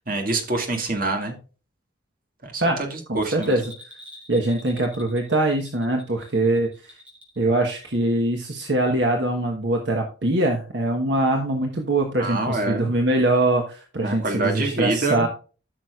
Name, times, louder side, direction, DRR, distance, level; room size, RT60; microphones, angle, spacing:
voice 1, 0.0-1.4 2.4-3.6 12.2-12.9 14.0-15.2, right 2 dB, 50° right, 3 dB, 2.1 m, -26 dB
voice 2, 3.1-3.6 4.3-6.9 7.4-15.3, right 1 dB, 65° right, 2 dB, 1.2 m, -23 dB
Bell, 3.3-7.4 7.7-7.8, left 1 dB, 10° right, 2.8 m, -46 dB
14.0 x 6.1 x 2.4 m, 0.36 s
head